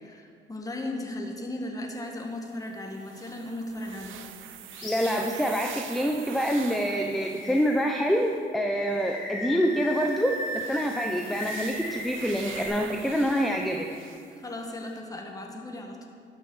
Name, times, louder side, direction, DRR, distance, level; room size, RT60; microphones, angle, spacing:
voice 1, 0.0-4.2 14.4-16.1, left 1 dB, 15° left, 1 dB, 1.5 m, -36 dB
sound 1, 2.6-8.3 9.0-14.4 14.9-15.0, right 10 dB, 80° right, 0.7 m, -45 dB
Animal, 4.7-5.1 5.5-5.7 7.3-8.0 8.7-12.7, left 1 dB, 80° left, 3.2 m, -36 dB
voice 2, 4.8-13.9, equal, ahead, 2 dB, 0.7 m, -26 dB
12.0 x 6.8 x 6.1 m, 2.2 s
cardioid pair, 90°, 20 cm